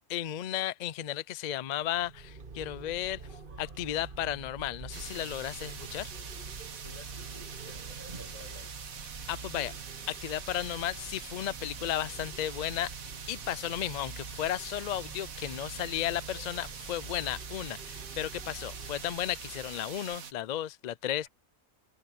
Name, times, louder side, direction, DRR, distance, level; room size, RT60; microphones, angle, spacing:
voice 1, 0.1-3.2 3.6-6.1 9.3-9.7 10.1-12.9 13.3-21.3, left 12 dB, 85° left, 0.3 m, -34 dB
sound 1, 1.8-20.0, right 4 dB, 40° right, 1.5 m, -46 dB
sound 2, 4.9-20.3, right 6 dB, 80° right, 1.9 m, -44 dB
voice 2, 6.7-9.0 21.2-21.3, left 2 dB, 70° left, 7.9 m, -54 dB
omnidirectional pair, 1.5 m